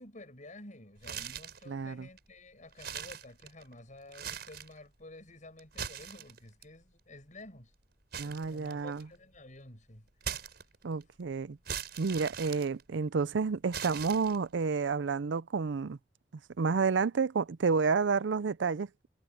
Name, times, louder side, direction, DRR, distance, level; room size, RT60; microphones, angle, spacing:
voice 1, 0.0-7.7 8.1-10.1, left 2 dB, 45° left, 7.4 m, -51 dB
sound 1, 1.0-1.7 2.2-2.3 2.7-3.7 4.1-4.8 5.6-6.6 8.1-9.2 10.2-11.0 11.7-13.2 13.7-14.6, right 8 dB, 60° right, 6.1 m, -40 dB
voice 2, 1.7-2.1 8.2-9.1 10.8-11.6 12.0-16.0 16.6-18.9, right 5 dB, 85° right, 0.5 m, -30 dB
head